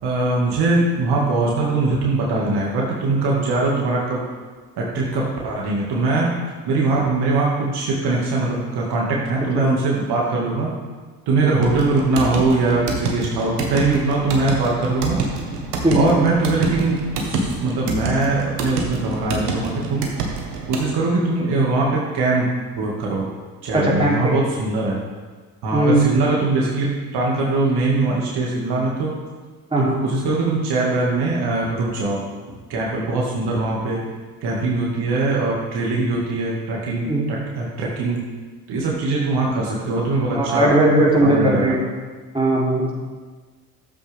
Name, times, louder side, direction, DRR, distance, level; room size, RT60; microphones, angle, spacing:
voice 1, 0.0-4.2 4.8-6.3 6.7-10.7 11.3-15.2 15.9-20.1 20.7-22.5 22.8-23.2 23.6-25.0 25.6-29.1 29.8-32.2 32.7-34.0 34.4-38.3 38.7-40.7 41.2-41.7, right 3 dB, 55° right, -3 dB, 2.2 m, -21 dB
sound 1, 11.6-20.9, right 3 dB, 80° right, 1.5 m, -27 dB
voice 2, 23.7-24.3 25.7-26.0 29.7-30.0 37.0-37.2 40.3-41.8 42.3-42.9, right 1 dB, 10° right, -5 dB, 3.5 m, -18 dB
12.5 x 7.9 x 3.6 m, 1.4 s
hypercardioid pair, 60°, 46 cm